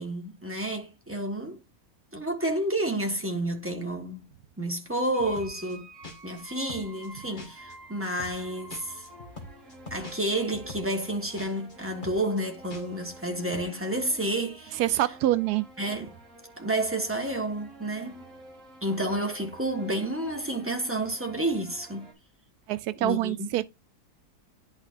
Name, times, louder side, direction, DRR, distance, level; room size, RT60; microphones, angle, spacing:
voice 1, 0.0-1.6 2.1-4.3 4.6-5.9 6.2-9.0 9.9-14.8 15.8-16.1 16.6-18.2 18.8-22.1 23.0-23.5, right 1 dB, 10° right, 1.4 m, -30 dB
sound 1, 5.0-5.8 6.0-6.4 6.7-7.1 7.4-7.8 8.0-8.4 8.7-11.1 11.4-11.8 12.0-12.4 12.7-13.1 13.4-13.6, left 2 dB, 35° left, 1.6 m, -43 dB
sound 2, 5.1-22.1, right 1 dB, 40° right, 2.2 m, -49 dB
voice 2, 14.8-15.6 22.7-23.6, right 14 dB, 90° right, 1.2 m, -25 dB
10.5 x 4.5 x 2.6 m
omnidirectional pair, 1.6 m